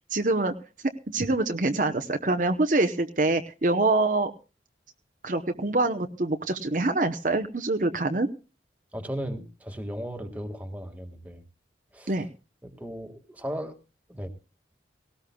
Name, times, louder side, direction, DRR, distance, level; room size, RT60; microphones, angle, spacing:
voice 1, 0.1-0.5 1.1-4.3 5.2-8.3 12.1-12.3, right 2 dB, 45° right, 7 dB, 0.9 m, -25 dB
voice 2, 8.9-11.4 11.9-12.2 12.6-13.8 14.1-14.3, equal, 10° right, 4 dB, 1.8 m, -36 dB
18.5 x 18.0 x 2.3 m, 0.33 s
head